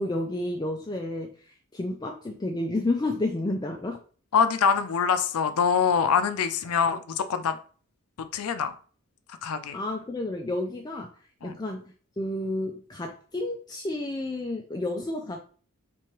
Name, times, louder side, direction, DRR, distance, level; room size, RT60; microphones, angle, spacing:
voice 1, 0.0-4.0 9.7-15.4, left 2 dB, 20° left, 0.3 m, -31 dB
voice 2, 4.3-7.6 8.3-8.7 9.4-9.8 11.4-11.5, left 6 dB, 80° left, 0.4 m, -24 dB
4.5 x 3.4 x 3.0 m
head